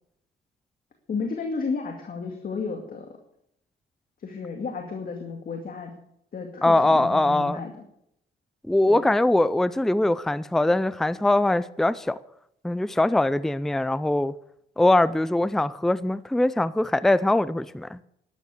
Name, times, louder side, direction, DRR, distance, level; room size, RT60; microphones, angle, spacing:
voice 1, 1.1-3.1 4.2-5.9 6.3-7.7 8.9-9.1, left 4 dB, 45° left, 2.3 m, -32 dB
voice 2, 6.6-7.6 8.7-12.2 12.6-14.3 14.8-18.0, left 1 dB, ahead, 0.5 m, -22 dB
12.0 x 11.0 x 8.3 m
cardioid pair, 90°, 20 cm